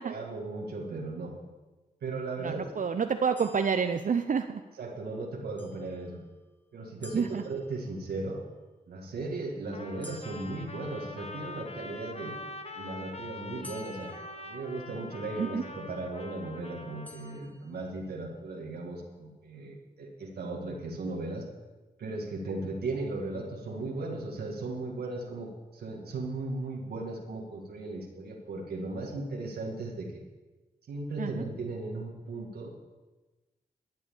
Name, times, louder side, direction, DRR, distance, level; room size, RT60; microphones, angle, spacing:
voice 1, 0.0-1.4 2.0-2.8 4.8-6.2 6.7-8.4 8.9-12.4 12.8-14.1 14.4-21.5 22.0-30.1 30.9-32.8, right 2 dB, 90° right, -1 dB, 1.9 m, -37 dB
voice 2, 2.4-4.6 7.1-7.4 15.4-15.6 31.2-31.4, right 6 dB, 55° right, 8 dB, 0.6 m, -29 dB
sound 1, 3.4-4.7 5.6-6.5 7.0-8.2 10.0-11.5 13.6-15.2 17.0-18.2, left 1 dB, 10° left, 1.6 m, -53 dB
Trumpet, 9.7-17.5, left 2 dB, 40° left, 1.4 m, -44 dB
12.5 x 7.9 x 7.1 m, 1.2 s
cardioid pair, 45°, 16 cm